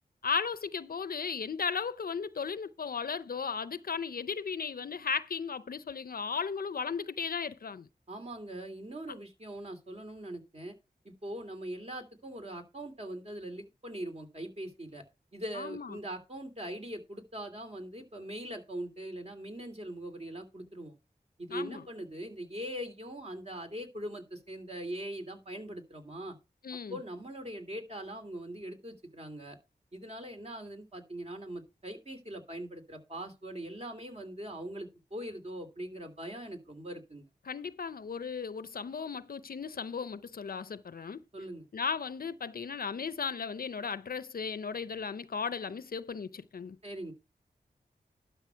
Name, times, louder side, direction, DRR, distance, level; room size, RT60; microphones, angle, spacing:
voice 1, 0.2-7.9 15.5-16.0 21.5-21.8 26.6-27.0 37.5-41.2 41.7-46.8, left 6 dB, 65° left, 0.6 m, -36 dB
voice 2, 8.1-10.7 11.0-15.0 15.3-20.9 21.4-26.4 26.9-29.6 29.9-37.2 41.3-41.7 46.8-47.1, right 1 dB, 40° right, 2.9 m, -41 dB
12.0 x 5.5 x 4.6 m
wide cardioid pair, 60°, 16 cm